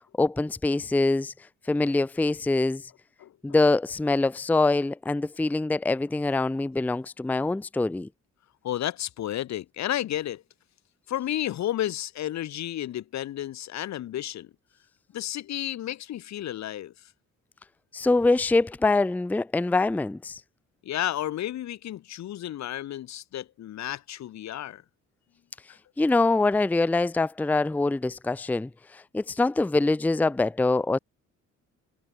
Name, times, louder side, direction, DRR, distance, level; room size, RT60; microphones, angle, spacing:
voice 1, 0.2-1.3 1.7-2.8 3.4-8.1 17.9-20.4 26.0-31.0, left 2 dB, 5° left, 0.5 m, -24 dB
voice 2, 8.6-10.4 11.1-14.5 15.1-17.1 20.8-24.8, left 12 dB, 65° left, 1.0 m, -32 dB
cardioid pair, 90°, 30 cm